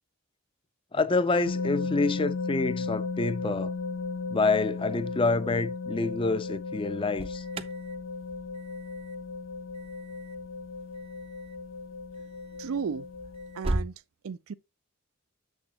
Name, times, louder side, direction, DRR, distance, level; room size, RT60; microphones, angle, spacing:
voice 1, 0.9-3.7 4.3-7.4, left 3 dB, 25° left, 0.5 m, -27 dB
sound 1, 1.4-13.6, left 4 dB, 65° left, 0.9 m, -35 dB
Alarm, 6.8-14.0, right 2 dB, 25° right, 0.5 m, -39 dB
voice 2, 12.6-13.1 13.6-13.9 14.2-14.5, right 6 dB, 80° right, 0.4 m, -33 dB
7.7 x 6.3 x 2.9 m
head